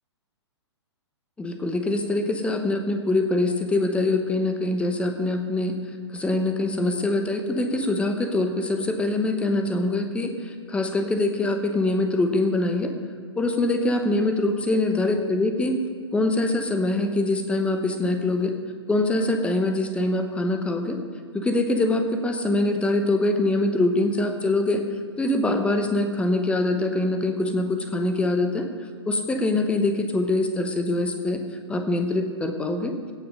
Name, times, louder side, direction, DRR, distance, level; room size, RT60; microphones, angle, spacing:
voice 1, 1.4-5.7 6.1-12.9 13.4-15.8 16.1-18.5 18.9-21.0 21.3-24.8 25.2-28.7 29.1-31.4 31.7-32.9, left 2 dB, 5° left, 6 dB, 0.9 m, -24 dB
16.5 x 5.8 x 5.4 m, 2.2 s
figure-of-eight pair, 115°, 15 cm